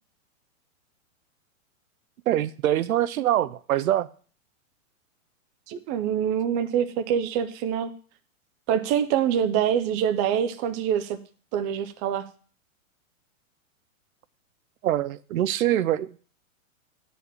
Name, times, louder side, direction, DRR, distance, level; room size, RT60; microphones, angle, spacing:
voice 1, 2.3-4.1 14.8-16.2, right 12 dB, 80° right, 0.6 m, -24 dB
voice 2, 5.7-7.9 8.7-11.2 11.5-12.2, right 9 dB, 20° right, 0.4 m, -25 dB
9.2 x 4.2 x 7.0 m
hypercardioid pair, 130°, 41 cm